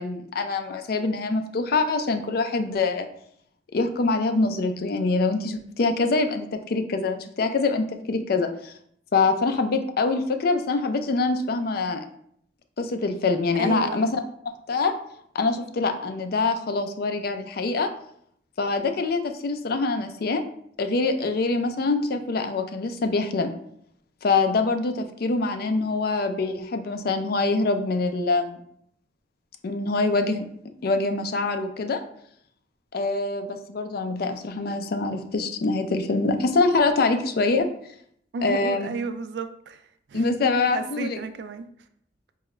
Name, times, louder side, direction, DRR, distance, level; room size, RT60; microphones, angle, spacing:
voice 1, 0.0-3.1 3.7-8.7 9.1-12.0 12.8-14.2 14.7-14.9 15.3-17.9 18.6-20.4 20.8-23.5 24.2-28.6 29.6-30.5 30.8-32.0 32.9-37.7 38.4-38.9 40.1-41.2, left 3 dB, 60° left, 7 dB, 0.4 m, -24 dB
voice 2, 13.5-14.1 38.3-40.3 40.7-41.7, right 4 dB, 70° right, 11 dB, 0.3 m, -33 dB
4.7 x 2.2 x 3.1 m, 0.68 s
head